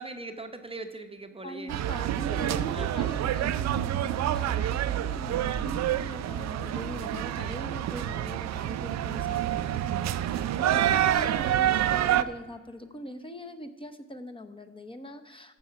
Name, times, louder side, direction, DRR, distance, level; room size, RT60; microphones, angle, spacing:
voice 1, 0.0-1.8 2.7-3.1 10.7-11.2, right 3 dB, 20° right, 7 dB, 0.8 m, -41 dB
voice 2, 1.4-15.6, equal, 15° left, 6 dB, 0.8 m, -41 dB
sound 1, 1.7-12.2, right 11 dB, 60° right, 0.6 m, -28 dB
14.0 x 5.6 x 5.8 m, 1.2 s
cardioid pair, 90°, 30 cm